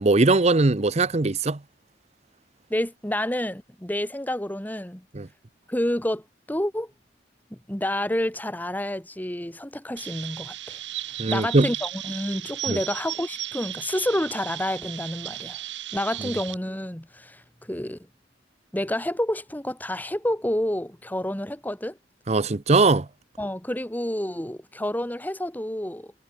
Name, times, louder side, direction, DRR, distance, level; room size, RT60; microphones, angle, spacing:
voice 1, 0.0-1.6 5.1-5.3 11.2-11.7 12.7-12.8 22.3-23.1, right 3 dB, 35° right, 0.7 m, -20 dB
voice 2, 2.7-5.0 5.7-6.9 7.5-10.8 11.3-15.6 15.9-18.0 18.7-22.0 23.4-26.1, left 1 dB, 10° left, 1.5 m, -29 dB
Chirp tweet, 10.0-16.5, right 13 dB, 75° right, 3.2 m, -35 dB
head